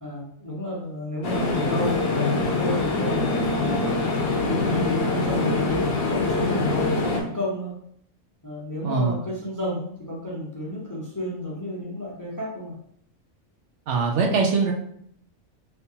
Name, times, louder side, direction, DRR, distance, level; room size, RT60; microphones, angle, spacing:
voice 1, 0.0-3.9 4.4-7.7 8.4-12.8, left 1 dB, 20° left, -5 dB, 0.5 m, -31 dB
sound 1, 1.2-7.2, left 3 dB, 55° left, 0.7 m, -24 dB
voice 2, 8.8-9.1 13.9-14.7, right 4 dB, 70° right, 1 dB, 0.8 m, -22 dB
3.5 x 2.7 x 2.8 m, 0.67 s
omnidirectional pair, 1.4 m